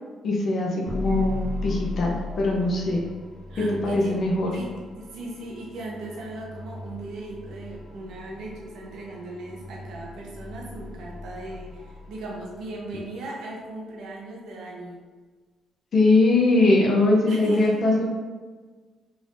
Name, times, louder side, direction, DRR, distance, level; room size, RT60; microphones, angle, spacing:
voice 1, 0.2-3.1 3.6-4.5 15.9-18.1, left 2 dB, 55° left, -2 dB, 0.8 m, -21 dB
sound 1, 0.9-13.0, left 2 dB, 20° right, 0.8 m, -38 dB
voice 2, 3.5-4.2 4.5-15.0 17.3-17.8, right 2 dB, 80° right, -3 dB, 0.8 m, -38 dB
3.5 x 2.6 x 3.4 m, 1.4 s
cardioid pair, 90°, 0 cm